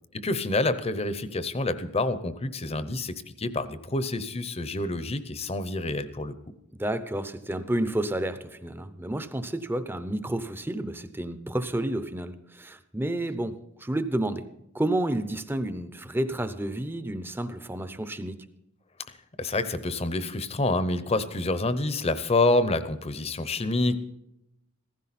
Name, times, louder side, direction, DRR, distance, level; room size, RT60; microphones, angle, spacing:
voice 1, 0.1-6.3 19.4-24.0, left 2 dB, 30° left, 12 dB, 0.8 m, -27 dB
voice 2, 6.7-13.5 13.8-14.5 14.7-18.4, right 1 dB, 10° right, 11 dB, 0.7 m, -30 dB
15.5 x 15.0 x 4.2 m, 0.85 s
head